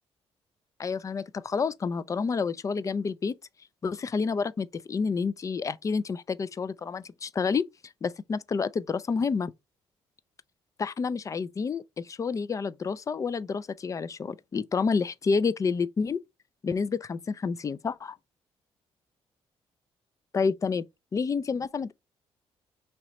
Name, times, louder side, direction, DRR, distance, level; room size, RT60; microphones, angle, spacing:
voice 1, 0.8-3.3 3.8-7.6 8.0-9.5 10.8-16.2 16.6-18.2 20.3-20.8 21.1-21.9, left 5 dB, 30° left, 0.3 m, -29 dB
3.0 x 2.9 x 4.2 m
cardioid pair, 80°, 11 cm